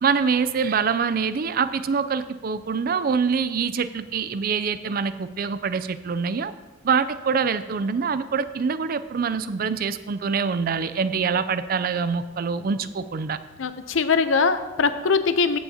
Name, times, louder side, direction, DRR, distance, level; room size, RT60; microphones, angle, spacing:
voice 1, 0.0-6.5 6.8-13.4, right 5 dB, 50° right, 13 dB, 0.4 m, -25 dB
voice 2, 13.6-15.6, left 4 dB, 90° left, 10 dB, 0.6 m, -21 dB
15.0 x 7.0 x 2.8 m, 1.2 s
head